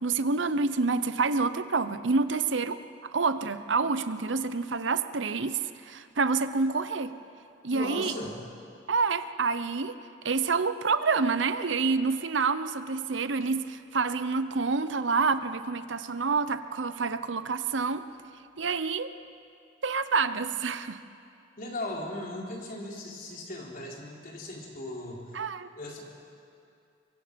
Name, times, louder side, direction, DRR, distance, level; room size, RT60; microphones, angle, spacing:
voice 1, 0.0-2.8 3.1-7.1 7.6-8.1 8.9-10.0 10.2-18.1 18.6-19.1 19.8-21.0 25.3-25.7, right 4 dB, 70° right, 12 dB, 0.8 m, -28 dB
voice 2, 7.7-8.4 21.6-25.4 25.8-26.0, left 1 dB, 50° left, -2 dB, 3.9 m, -37 dB
24.0 x 24.0 x 5.2 m, 2.5 s
head